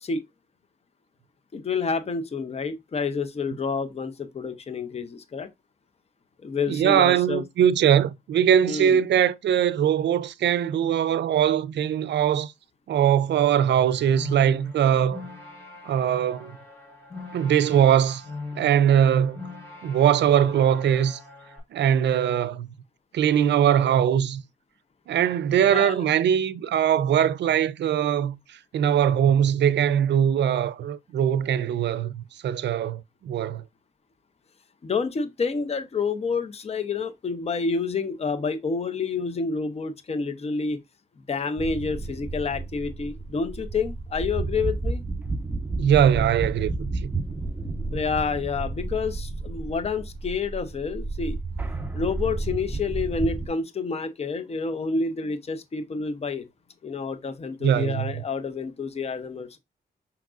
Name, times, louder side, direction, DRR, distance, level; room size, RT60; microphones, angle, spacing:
voice 1, 1.5-5.5 6.4-7.4 8.7-9.0 25.7-26.0 34.8-40.8 41.3-45.0 47.9-51.4 51.9-56.5 56.8-59.6, left 4 dB, 35° left, 0.6 m, -29 dB
voice 2, 6.7-12.5 12.9-15.2 15.9-16.5 17.3-18.2 18.6-19.4 19.8-21.2 21.7-22.7 23.1-24.4 25.1-28.4 28.7-33.6 45.8-47.1 57.6-58.2, right 9 dB, 80° right, 0.4 m, -21 dB
sound 1, 13.6-21.6, left 3 dB, 15° left, 2.8 m, -41 dB
sound 2, 41.6-53.5, right 3 dB, 10° right, 0.8 m, -31 dB
5.8 x 3.7 x 2.4 m
cardioid pair, 85°, 18 cm